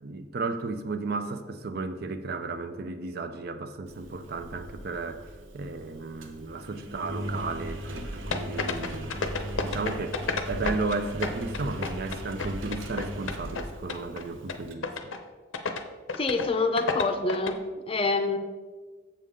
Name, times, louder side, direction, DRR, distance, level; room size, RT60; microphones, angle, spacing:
voice 1, 0.0-9.1 9.6-10.2 10.5-15.1, right 3 dB, 50° right, 0.5 m, -34 dB
Engine, 3.9-14.7, equal, 75° right, 0.9 m, -38 dB
sound 1, 8.3-11.0 11.2-13.6 13.9-14.2 14.5-14.6 14.8-15.2 15.5-15.8 16.1-16.5 16.8-17.5, left 4 dB, 80° left, 0.7 m, -30 dB
voice 2, 16.1-17.6 17.9-18.4, left 3 dB, 30° left, 0.5 m, -26 dB
7.5 x 6.9 x 3.6 m
head